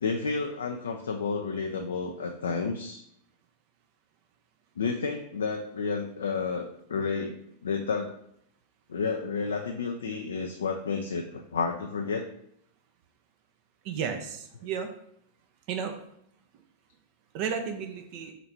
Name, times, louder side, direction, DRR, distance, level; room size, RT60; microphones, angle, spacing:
voice 1, 0.0-3.0 4.8-7.4 7.6-8.1 8.9-12.2, left 5 dB, 70° left, 4 dB, 0.4 m, -31 dB
voice 2, 13.8-14.9 15.7-16.0 17.3-18.3, right 7 dB, 45° right, 6 dB, 0.5 m, -33 dB
4.0 x 3.2 x 4.1 m, 0.71 s
figure-of-eight pair, 90°, 0 cm